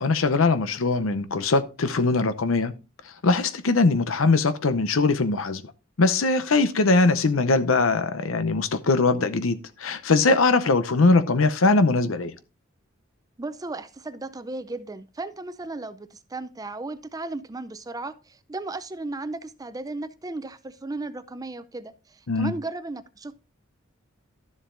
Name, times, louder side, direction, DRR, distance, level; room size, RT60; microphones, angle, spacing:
voice 1, 0.0-2.7 3.2-5.6 6.0-12.3 22.3-22.5, left 3 dB, 80° left, 0.7 m, -21 dB
voice 2, 13.4-23.3, right 2 dB, 20° right, 0.5 m, -35 dB
12.5 x 7.2 x 2.6 m
head